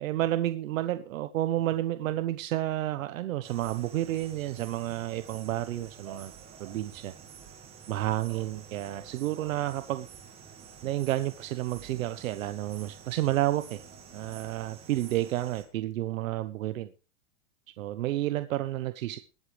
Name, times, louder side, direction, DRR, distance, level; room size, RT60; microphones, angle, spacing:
voice 1, 0.0-6.3 6.6-7.1 7.9-10.1 10.8-13.8 14.1-16.9 17.8-19.2, right 14 dB, 90° right, 11 dB, 1.0 m, -30 dB
sound 1, 3.4-15.6, right 7 dB, 15° right, 1.8 m, -49 dB
21.0 x 8.3 x 3.3 m, 0.33 s
supercardioid pair, 180°, 39 cm